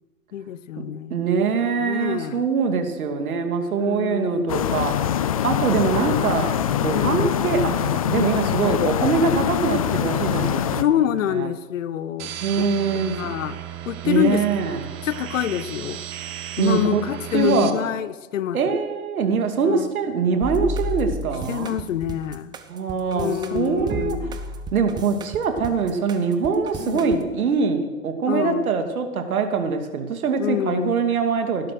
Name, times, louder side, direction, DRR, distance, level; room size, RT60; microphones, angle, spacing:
voice 1, 0.3-1.3 1.8-2.4 3.7-4.5 6.9-7.3 8.1-8.6 10.8-12.4 13.1-13.6 13.9-14.4 15.0-16.0 16.6-18.7 19.6-19.9 21.5-22.6 23.1-24.4 26.8-27.1 28.3-28.7 30.4-31.0, left 10 dB, 55° left, 16 dB, 1.0 m, -26 dB
voice 2, 1.1-11.5 12.4-13.3 14.0-14.9 16.6-17.0 17.3-17.8 18.5-21.7 22.7-24.2 24.7-31.7, right 5 dB, 70° right, 5 dB, 2.7 m, -23 dB
sound 1, 4.5-10.8, left 10 dB, 25° left, 0.4 m, -23 dB
sound 2, 12.2-17.7, right 11 dB, 30° right, 1.5 m, -35 dB
sound 3, 20.4-27.2, right 1 dB, 10° right, 0.7 m, -32 dB
18.5 x 12.0 x 6.4 m, 1.2 s
hypercardioid pair, 130°, 45 cm